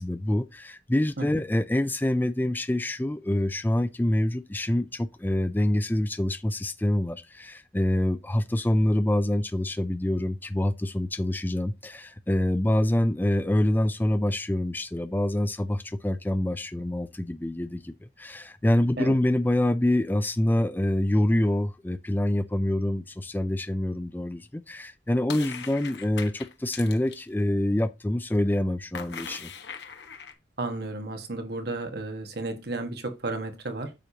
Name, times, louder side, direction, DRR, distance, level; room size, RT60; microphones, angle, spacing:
voice 1, 0.0-29.5, left 1 dB, 10° left, 0.4 m, -26 dB
sound 1, 25.3-27.2 28.9-30.3, left 6 dB, 65° left, 1.3 m, -40 dB
voice 2, 30.6-33.9, right 2 dB, 60° right, 1.6 m, -33 dB
9.0 x 6.6 x 2.9 m
head